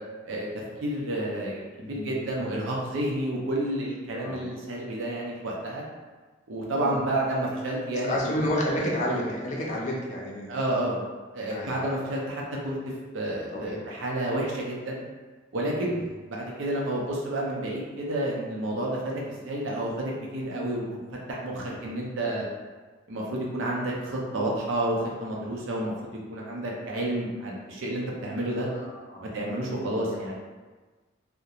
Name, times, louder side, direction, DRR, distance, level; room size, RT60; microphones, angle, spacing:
voice 1, 0.8-5.8 6.5-8.3 8.7-8.9 10.5-11.0 11.3-12.8 13.1-15.0 15.5-19.1 19.4-21.0 21.3-22.5 23.1-28.7 29.3-30.4, right 1 dB, 90° right, -2 dB, 0.6 m, -30 dB
voice 2, 1.8-2.4 4.1-4.4 6.7-7.0 8.0-10.5 11.5-12.0 13.5-13.8 21.5-21.9 28.5-29.3, left 1 dB, 40° left, -2 dB, 0.5 m, -31 dB
2.8 x 2.1 x 2.4 m, 1.3 s
head